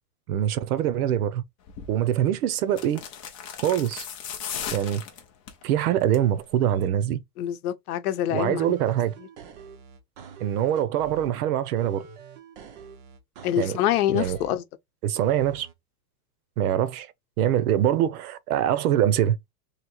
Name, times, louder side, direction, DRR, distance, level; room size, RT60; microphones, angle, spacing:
voice 1, 0.3-1.4 1.9-3.0 3.6-4.1 4.7-5.0 5.6-7.2 8.3-9.1 10.4-12.0 13.6-13.8 14.1-14.4 15.0-15.7 16.6-19.5, right 11 dB, 65° right, 0.8 m, -24 dB
sound 1, 1.7-1.9 2.7-5.6 6.0-6.3 6.6-6.7, left 8 dB, 25° left, 0.4 m, -36 dB
voice 2, 7.4-8.8 13.4-14.6, left 11 dB, 65° left, 0.8 m, -25 dB
sound 2, 8.6-11.4 11.8-14.6 15.2-15.7, right 6 dB, 30° right, 0.5 m, -45 dB
3.2 x 2.8 x 4.0 m
supercardioid pair, 165°, 48 cm